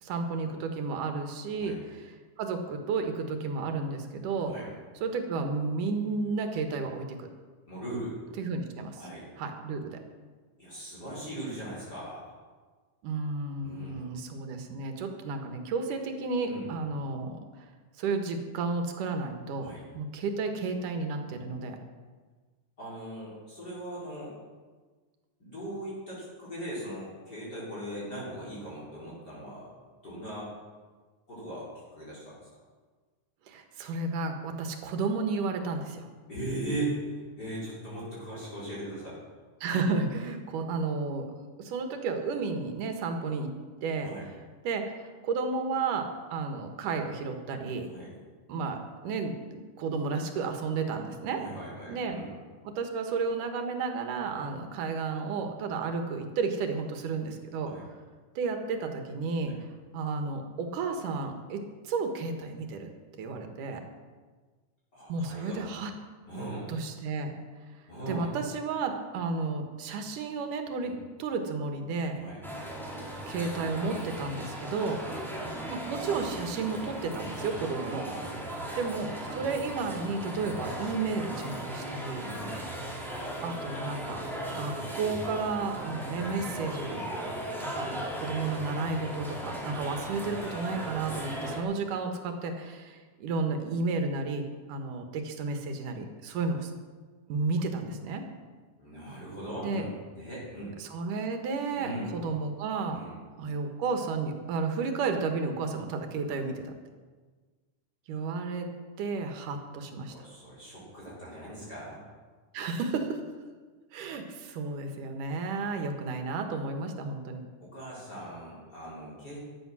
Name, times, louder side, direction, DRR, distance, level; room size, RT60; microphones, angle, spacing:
voice 1, 0.0-4.5 5.0-7.3 8.4-9.0 9.4-10.0 13.0-17.7 18.0-21.8 33.5-36.1 39.6-41.3 41.6-43.5 43.8-44.1 44.6-44.9 45.2-47.9 48.5-48.8 49.0-51.4 51.9-52.2 52.6-57.7 58.4-59.5 59.9-62.9 63.2-63.8 65.1-65.9 66.7-67.4 68.1-72.2 73.3-75.0 75.7-78.0 78.8-82.3 83.4-84.2 84.5-87.0 87.6-96.7 97.3-98.2 99.6-99.8 100.8-103.0 103.4-106.7 108.1-108.7 109.0-110.3 112.5-113.2 113.9-117.4, right 4 dB, 85° right, 5 dB, 3.0 m, -32 dB
voice 2, 7.7-8.2 9.0-9.3 10.6-12.3 13.6-14.0 16.5-16.7 19.6-19.8 22.8-24.3 25.4-29.7 30.0-30.5 31.3-32.5 36.3-39.2 44.0-44.2 47.9-48.1 51.3-52.3 57.6-57.8 59.4-59.5 64.9-65.7 66.3-66.7 67.9-68.3 70.8-71.0 72.1-72.4 74.9-75.2 78.0-78.7 82.1-82.6 86.8-87.1 98.8-100.8 101.7-102.1 102.9-103.1 109.1-109.2 110.1-112.0 117.6-119.4, right 1 dB, 30° left, -7 dB, 4.6 m, -39 dB
sound 1, 72.4-91.6, right 1 dB, ahead, 2.2 m, -37 dB
14.0 x 10.5 x 6.2 m, 1.4 s
omnidirectional pair, 3.6 m